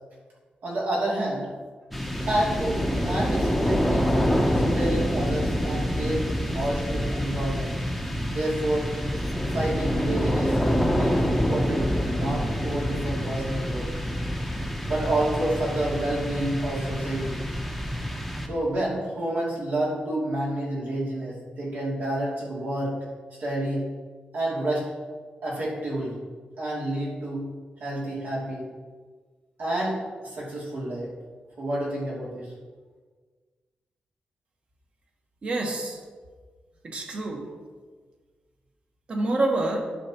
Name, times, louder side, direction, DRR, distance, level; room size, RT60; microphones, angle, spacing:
voice 1, 0.6-1.5 2.3-6.2 6.5-7.8 8.3-8.9 9.5-10.6 10.9-13.9 14.9-17.4 18.5-23.0 23.4-23.9 24.3-24.9 25.4-26.2 26.6-27.4 27.8-28.7 29.6-31.1 31.6-32.5, right 1 dB, 75° right, -6 dB, 2.6 m, -29 dB
sound 1, 1.9-18.9, equal, ahead, 0.6 m, -26 dB
voice 2, 35.4-36.0 36.8-37.5 39.1-39.9, right 2 dB, 40° right, 2 dB, 1.1 m, -27 dB
11.0 x 6.9 x 2.9 m, 1.5 s
wide cardioid pair, 180°, 3 cm